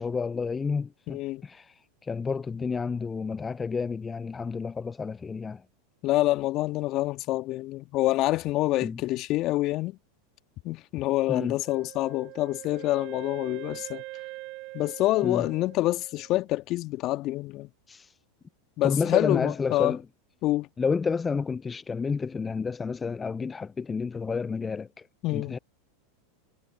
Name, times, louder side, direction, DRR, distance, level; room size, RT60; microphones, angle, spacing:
voice 1, 0.0-5.6 8.8-9.0 11.3-11.6 15.2-15.5 17.9-18.2 18.8-20.0 20.8-25.1 25.3-25.6, left 5 dB, 20° left, 0.5 m, -30 dB
voice 2, 1.1-1.4 6.0-10.0 10.6-14.0 14.7-17.7 18.8-20.0 20.4-20.7 25.2-25.6, left 17 dB, 45° left, 2.0 m, -27 dB
Wind instrument woodwind instrument, 11.6-16.5, right 22 dB, 50° right, 4.4 m, -43 dB
hypercardioid pair, 90°, 0 cm